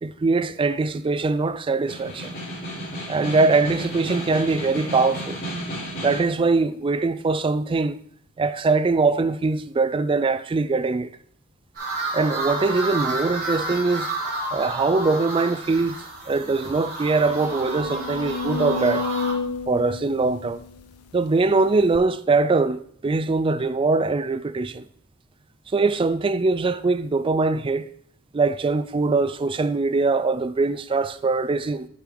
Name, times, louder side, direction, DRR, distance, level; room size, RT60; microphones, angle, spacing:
voice 1, 0.0-2.4 3.1-5.4 6.0-8.0 8.4-11.1 12.1-14.1 14.5-16.0 16.3-19.1 19.7-20.6 21.1-24.9 25.7-27.9 28.3-31.9, right 3 dB, 25° right, 0.3 m, -22 dB
Snare drum, 1.9-6.4, equal, 40° left, 3.0 m, -33 dB
sound 1, 11.7-19.3, right 2 dB, 45° right, 3.9 m, -31 dB
sound 2, 15.9-16.0 16.4-16.5 17.0-21.3 21.9-22.0, left 4 dB, 90° left, 0.5 m, -31 dB
7.6 x 7.0 x 3.8 m
head